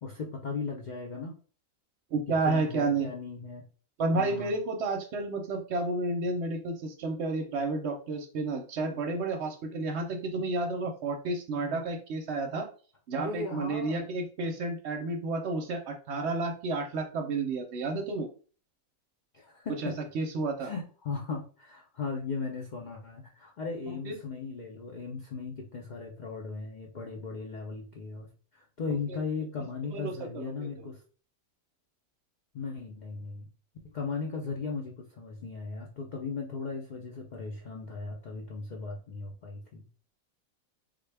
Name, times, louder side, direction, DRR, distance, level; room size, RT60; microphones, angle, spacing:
voice 1, 0.0-1.4 2.3-3.7 4.1-4.5 13.1-14.1 19.3-19.9 20.6-31.0 32.5-33.5 33.8-39.9, left 4 dB, 65° left, 0 dB, 0.4 m, -37 dB
voice 2, 2.1-3.1 4.0-12.7 13.1-18.3 19.8-20.7 23.9-24.2 29.9-30.7, right 3 dB, 60° right, 4 dB, 0.8 m, -31 dB
3.6 x 2.2 x 3.3 m, 0.39 s
omnidirectional pair, 1.5 m